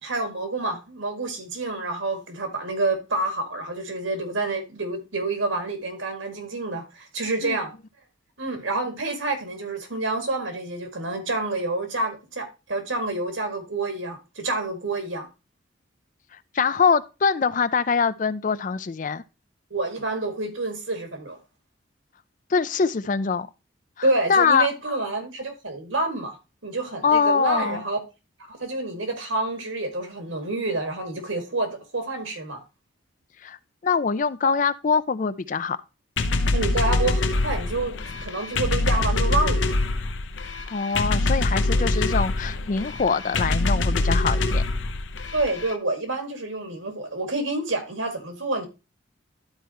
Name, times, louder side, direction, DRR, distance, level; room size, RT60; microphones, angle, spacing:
voice 1, 0.0-7.7 8.4-15.3 19.7-21.4 24.0-26.4 26.6-28.0 28.5-32.6 36.5-39.7 41.7-41.9 45.3-48.7, right 2 dB, 80° right, 2.2 m, -28 dB
voice 2, 16.3-19.2 22.5-23.5 24.0-24.7 27.0-27.8 33.4-33.6 33.8-35.8 40.7-44.6, left 5 dB, 40° left, 0.4 m, -23 dB
sound 1, 36.2-45.7, left 2 dB, 70° left, 0.7 m, -24 dB
12.0 x 4.6 x 3.0 m
head